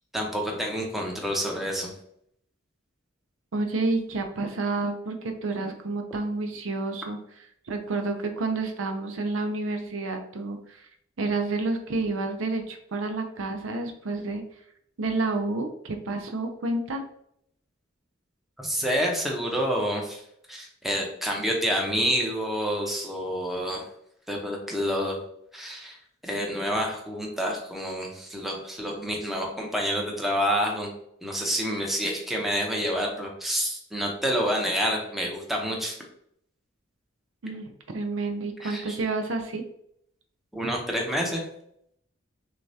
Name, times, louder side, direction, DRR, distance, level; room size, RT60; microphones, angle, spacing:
voice 1, 0.1-1.9 18.6-20.2 20.5-23.9 24.3-25.2 25.5-26.0 26.2-30.9 31.2-36.0 38.6-39.0 40.5-41.4, equal, ahead, -1 dB, 0.8 m, -28 dB
voice 2, 3.5-7.2 7.7-10.9 11.2-14.4 15.0-17.0 37.4-39.6, right 3 dB, 75° right, 5 dB, 0.6 m, -29 dB
6.3 x 2.3 x 2.7 m, 0.71 s
head